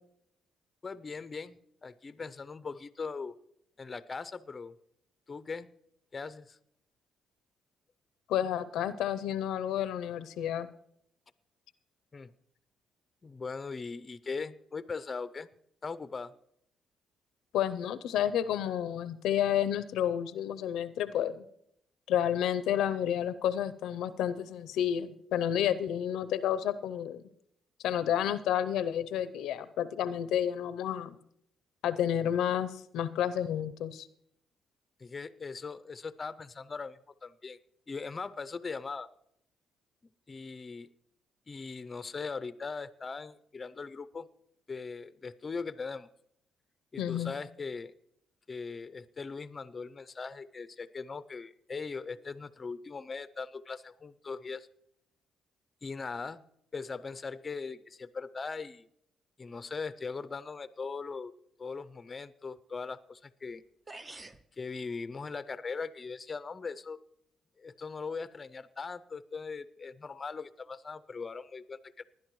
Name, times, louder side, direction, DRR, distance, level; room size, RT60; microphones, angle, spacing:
voice 1, 0.8-3.3 3.8-4.7 5.3-5.7 6.1-6.6 12.1-12.3 13.2-15.5 15.8-16.3 35.0-37.6 37.9-39.1 40.3-40.9 41.5-44.3 44.7-46.1 46.9-47.9 48.5-54.7 55.8-56.4 56.7-58.9 59.4-61.3 61.6-63.6 64.5-67.0 67.6-72.0, left 4 dB, 30° left, 13 dB, 0.5 m, -40 dB
voice 2, 8.3-10.7 17.5-21.4 22.1-27.2 27.8-31.2 31.8-34.1 47.0-47.3, left 10 dB, 85° left, 13 dB, 0.5 m, -30 dB
sound 1, 63.5-63.6 63.9-64.5, right 2 dB, 25° right, 0.6 m, -46 dB
19.5 x 10.5 x 3.1 m, 0.73 s
cardioid pair, 90°, 0 cm